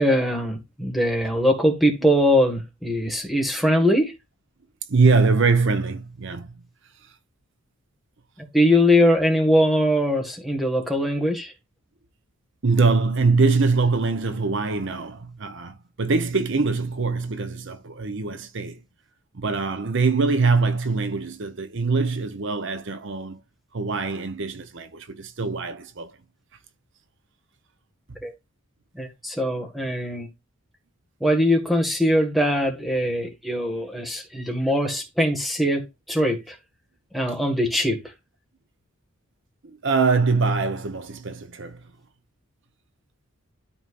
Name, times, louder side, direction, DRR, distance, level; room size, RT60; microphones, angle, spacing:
voice 1, 0.0-4.1 8.5-11.5 28.2-28.3 28.9-30.3 31.2-36.5 37.1-38.0, equal, ahead, 1.6 m, -21 dB
voice 2, 4.9-6.5 12.6-18.8 19.3-23.4 23.7-26.1 28.1-28.2 39.6-41.8, right 4 dB, 60° right, 0.8 m, -23 dB
12.5 x 4.4 x 2.5 m
head